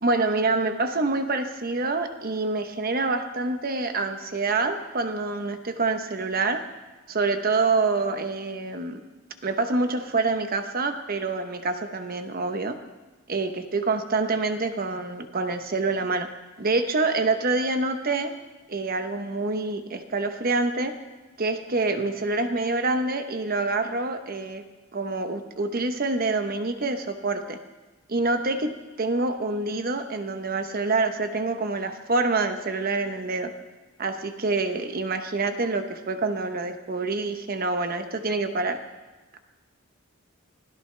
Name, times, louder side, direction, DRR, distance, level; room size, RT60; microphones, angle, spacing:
voice 1, 0.0-6.6 7.1-9.0 9.4-12.8 13.3-16.3 16.6-18.3 18.7-20.9 21.4-24.6 24.9-27.6 28.1-33.5 34.0-38.8, right 3 dB, 45° right, 7 dB, 1.0 m, -26 dB
24.5 x 16.5 x 3.4 m, 1.2 s
head